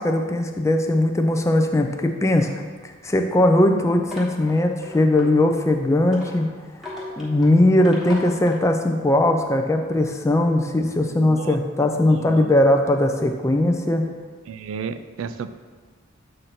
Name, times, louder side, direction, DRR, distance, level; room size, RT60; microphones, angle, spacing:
voice 1, 0.0-2.5 2.8-6.5 7.2-14.0, left 1 dB, 15° left, 4 dB, 0.4 m, -19 dB
sound 1, 2.4-8.6, left 1 dB, ahead, 1.1 m, -40 dB
voice 2, 11.1-11.6 12.1-12.5 14.5-15.5, right 6 dB, 75° right, 11 dB, 0.3 m, -33 dB
7.7 x 2.6 x 5.8 m, 1.5 s
head